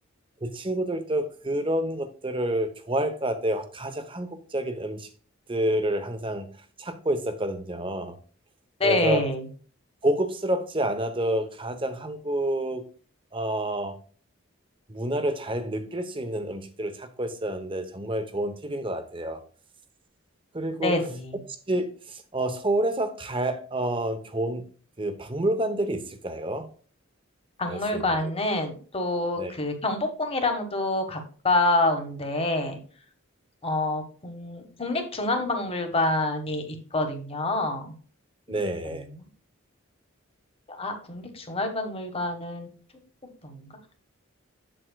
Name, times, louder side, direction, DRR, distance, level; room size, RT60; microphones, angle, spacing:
voice 1, 0.4-5.1 5.5-6.5 6.8-8.2 8.8-9.3 10.0-12.8 13.3-13.9 14.9-19.4 20.5-20.9 21.7-24.6 25.0-26.7 27.7-28.1 29.4-29.5 38.5-39.0, right 1 dB, 25° right, 0.9 m, -28 dB
voice 2, 8.8-9.4 20.8-21.3 27.6-32.8 33.6-37.9 38.5-38.6 38.8-38.9 40.8-42.7 43.4-43.7, left 2 dB, 30° left, 1.4 m, -27 dB
7.7 x 7.6 x 2.3 m
head